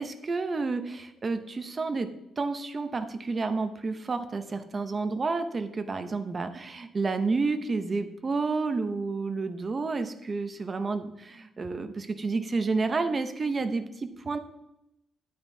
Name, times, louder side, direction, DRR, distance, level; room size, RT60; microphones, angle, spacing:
voice 1, 0.0-2.1 2.4-14.4, right 3 dB, 25° right, 8 dB, 0.6 m, -30 dB
9.4 x 8.6 x 2.7 m, 0.87 s
cardioid pair, 160°, 0 cm